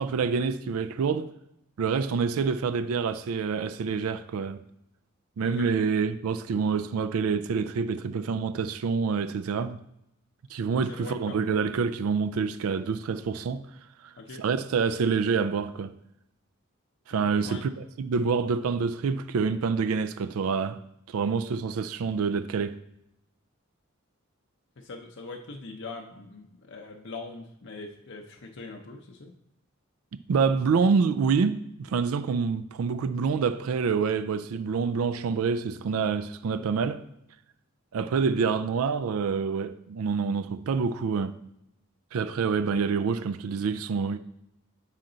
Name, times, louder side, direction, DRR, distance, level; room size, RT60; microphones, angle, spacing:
voice 1, 0.0-1.3 1.8-4.6 5.4-9.8 10.5-13.7 14.0-14.1 14.4-15.9 17.1-20.8 21.1-22.8 30.3-37.0 37.9-41.4 42.1-44.2, right 5 dB, 90° right, 0.4 m, -27 dB
voice 2, 5.4-5.7 10.9-11.6 14.2-14.4 17.1-17.2 17.4-17.6 24.8-29.3, left 3 dB, 60° left, 0.6 m, -42 dB
7.4 x 5.8 x 3.9 m
head